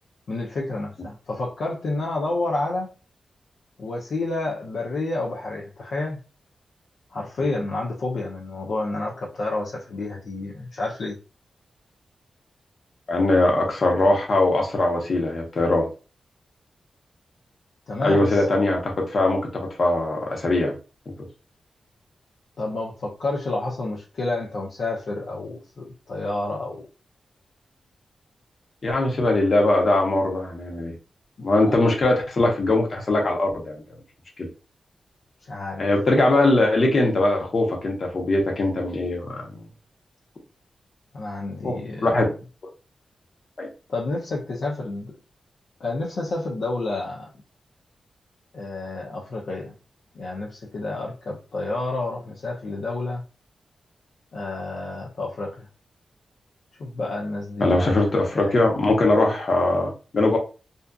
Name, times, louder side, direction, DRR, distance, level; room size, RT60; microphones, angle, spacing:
voice 1, 0.3-2.9 3.8-6.2 7.1-11.2 17.9-18.4 22.6-26.8 31.7-31.8 35.4-35.9 41.1-42.2 43.9-45.1 45.8-47.3 48.5-49.7 50.1-53.2 54.3-55.7 56.8-58.6, left 2 dB, 75° left, 0.5 m, -29 dB
voice 2, 13.1-15.9 18.0-20.7 28.8-30.9 31.4-33.8 35.8-39.5 41.6-41.8 42.0-42.2 43.6-43.7 57.6-60.4, left 2 dB, 55° left, 0.9 m, -21 dB
2.6 x 2.3 x 2.3 m
cardioid pair, 80°, 0 cm